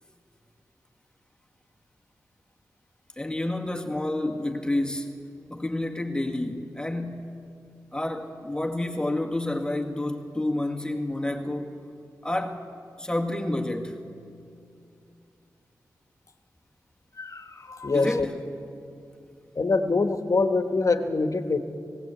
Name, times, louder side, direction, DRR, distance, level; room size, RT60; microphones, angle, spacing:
voice 1, 3.2-5.1 5.5-7.4 7.9-11.8 12.2-12.6 13.0-14.0 17.9-18.4, left 1 dB, 10° left, 1.9 m, -29 dB
voice 2, 17.2-18.3 19.5-21.6, left 3 dB, 50° left, 1.5 m, -24 dB
18.5 x 17.0 x 8.4 m
cardioid pair, 65°, 7 cm